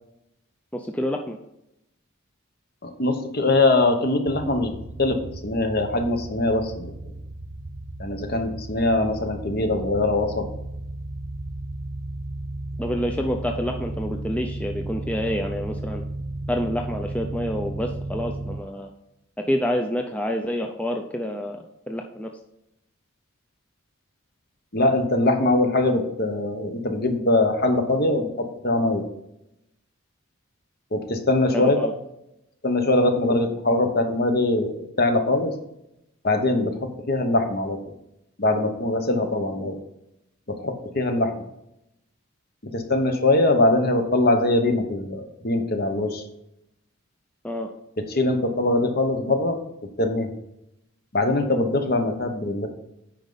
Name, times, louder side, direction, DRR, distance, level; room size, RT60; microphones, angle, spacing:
voice 1, 0.7-1.4 12.8-16.0 16.5-18.9 19.4-22.3 31.5-31.9 47.4-47.7, equal, 5° left, 3 dB, 0.4 m, -28 dB
voice 2, 2.8-6.9 8.0-10.5 24.7-29.1 30.9-31.8 32.6-35.5 36.2-36.8 37.1-37.8 38.4-39.8 40.5-41.3 42.7-46.2 48.1-49.6 50.0-50.3 51.1-52.7, left 2 dB, 45° left, 6 dB, 1.0 m, -22 dB
sound 1, 4.3-18.6, right 1 dB, 50° right, 0.6 m, -34 dB
8.9 x 5.2 x 3.9 m, 0.84 s
head